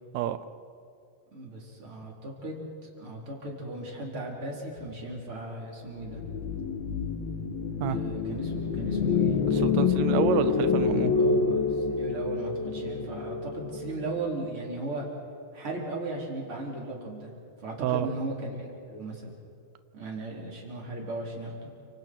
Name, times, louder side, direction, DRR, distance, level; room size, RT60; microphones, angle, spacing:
voice 1, 1.3-6.2 7.9-9.4 11.1-15.1 15.5-17.3 17.6-19.3 19.9-21.7, right 2 dB, 35° right, -2 dB, 4.4 m, -37 dB
sound 1, 6.0-14.3, left 5 dB, 90° left, 3.5 m, -27 dB
voice 2, 9.5-11.1 17.8-18.1, right 11 dB, 90° right, 12 dB, 1.5 m, -28 dB
30.0 x 26.5 x 4.6 m, 2.5 s
omnidirectional pair, 4.1 m